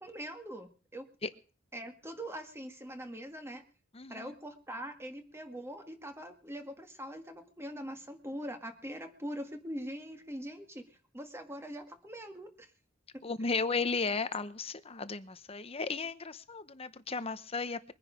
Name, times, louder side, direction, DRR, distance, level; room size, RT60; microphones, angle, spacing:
voice 1, 0.0-1.1 1.7-3.6 4.1-12.7, equal, 15° right, 1.8 m, -43 dB
voice 2, 3.9-4.3 13.2-17.9, left 4 dB, 30° left, 0.9 m, -35 dB
22.5 x 10.5 x 5.1 m
head